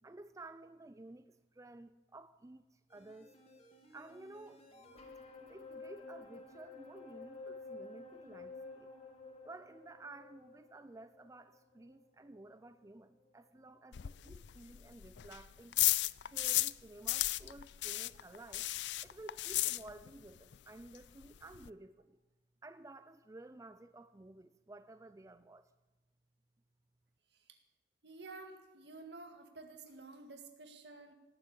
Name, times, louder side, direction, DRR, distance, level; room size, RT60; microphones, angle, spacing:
voice 1, 0.0-3.3 3.9-4.6 5.4-8.9 9.4-15.8 16.2-18.7 19.0-22.2 22.6-25.7, right 2 dB, 20° right, 0.4 m, -53 dB
sound 1, 2.9-13.3 13.7-13.8, left 3 dB, 35° left, 2.4 m, -52 dB
sound 2, 13.9-16.8 17.1-20.3 20.5-20.6 21.0-21.1 21.2-21.7, left 17 dB, 80° left, 0.4 m, -34 dB
voice 2, 28.0-31.1, right 3 dB, 70° right, 2.0 m, -51 dB
18.0 x 7.9 x 8.6 m
head